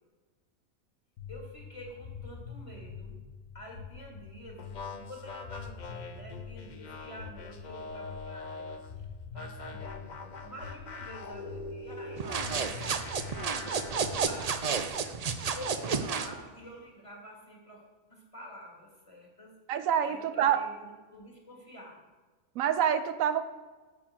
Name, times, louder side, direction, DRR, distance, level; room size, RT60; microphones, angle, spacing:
sound 1, 1.2-14.9, left 6 dB, 80° left, 1.3 m, -46 dB
voice 1, 1.3-3.2 3.5-9.1 9.3-13.1 13.9-15.0 15.5-19.5 20.0-22.0, equal, 25° left, -2 dB, 2.2 m, -48 dB
sound 2, 4.6-8.9 9.4-14.2, left 3 dB, 45° left, 0.6 m, -44 dB
sound 3, 12.2-16.3, right 5 dB, 60° right, 0.4 m, -31 dB
voice 2, 19.7-20.6 22.6-23.4, right 9 dB, 75° right, 11 dB, 1.1 m, -26 dB
9.7 x 4.7 x 7.5 m, 1.3 s
omnidirectional pair, 1.4 m